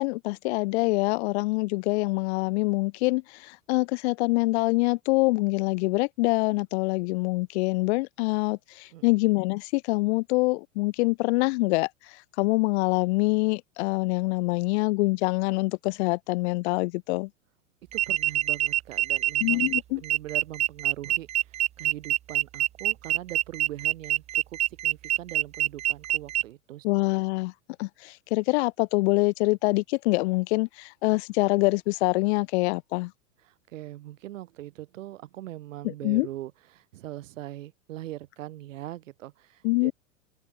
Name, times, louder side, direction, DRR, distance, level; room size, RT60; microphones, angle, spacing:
voice 1, 0.0-11.9 12.4-17.3 19.4-20.0 26.8-27.5 27.8-33.1 36.0-36.3 39.6-39.9, left 24 dB, 55° left, 0.9 m, -25 dB
sound 1, 17.9-26.4, right 12 dB, 20° right, 0.4 m, -26 dB
voice 2, 17.9-27.2 33.4-39.9, right 14 dB, 70° right, 1.9 m, -41 dB
hypercardioid pair, 105°, 40 cm